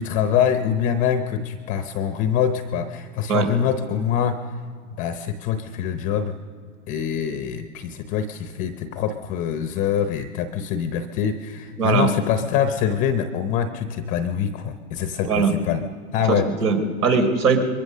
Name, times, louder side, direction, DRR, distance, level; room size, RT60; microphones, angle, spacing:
voice 1, 0.0-4.4 5.0-6.4 6.9-15.8 16.1-16.5, left 8 dB, 20° left, 9 dB, 0.6 m, -24 dB
voice 2, 11.8-12.1 15.2-15.5 16.3-17.6, right 5 dB, 90° right, 6 dB, 3.8 m, -20 dB
22.5 x 22.5 x 6.6 m, 2.1 s
hypercardioid pair, 145°, 44 cm